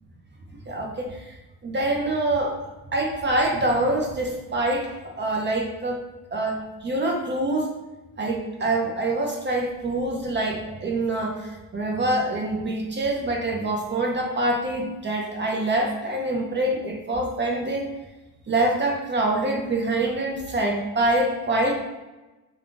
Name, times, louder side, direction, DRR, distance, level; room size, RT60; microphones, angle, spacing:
voice 1, 0.7-1.3 1.6-6.0 6.3-7.7 8.2-17.8 18.5-21.8, right 2 dB, 30° right, 0 dB, 0.6 m, -25 dB
2.4 x 2.4 x 3.7 m, 1.1 s
cardioid pair, 95°, 38 cm